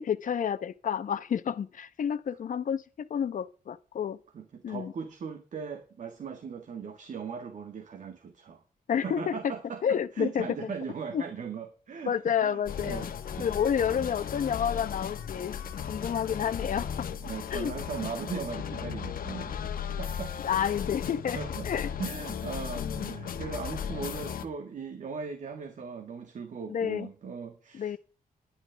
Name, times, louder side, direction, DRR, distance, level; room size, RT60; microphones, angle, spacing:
voice 1, 0.0-4.2 4.6-4.9 8.9-9.4 9.8-10.5 11.1-11.2 12.1-13.1 13.4-17.1 17.5-17.7 20.4-21.4 21.6-21.9 22.8-23.1 26.7-27.1 27.7-28.0, left 8 dB, 65° left, 1.0 m, -30 dB
voice 2, 4.3-8.6 9.0-12.1 12.4-13.1 13.4-13.7 17.2-19.7 20.0-20.3 21.3-21.7 22.0-28.0, right 6 dB, 60° right, 1.7 m, -39 dB
sound 1, 12.7-24.5, left 8 dB, 85° left, 1.4 m, -36 dB
20.5 x 11.0 x 3.5 m
wide cardioid pair, 180°, 14 cm